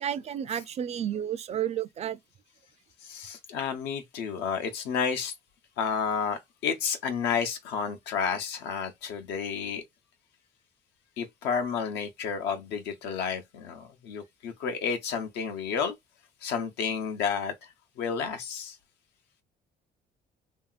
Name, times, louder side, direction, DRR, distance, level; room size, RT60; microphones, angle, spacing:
voice 1, 0.0-2.2, right 10 dB, 40° right, 0.4 m, -31 dB
voice 2, 3.0-5.3 5.8-9.8 11.2-15.9 16.4-17.7 18.0-18.8, left 6 dB, 85° left, 0.8 m, -31 dB
2.8 x 2.8 x 2.3 m
cardioid pair, 110°, 17 cm